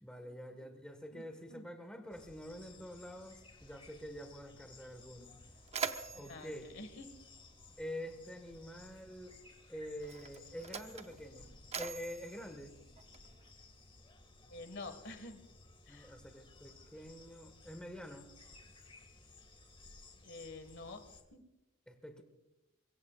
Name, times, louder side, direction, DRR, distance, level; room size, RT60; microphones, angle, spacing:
voice 1, 0.0-5.4 6.2-6.7 7.8-9.4 9.7-12.7 15.9-18.3 21.9-22.2, equal, 5° left, 6 dB, 1.5 m, -47 dB
sound 1, 2.1-21.2, left 3 dB, 25° left, 1.9 m, -58 dB
Mechanisms, 4.8-4.9 5.2-7.9 8.9-9.1 9.9-13.5, right 6 dB, 30° right, 0.8 m, -44 dB
voice 2, 6.1-7.1 14.5-15.4 15.9-16.1 20.2-21.0 21.3-21.4, left 2 dB, 60° left, 7 dB, 1.7 m, -48 dB
24.5 x 22.5 x 2.4 m, 0.99 s
head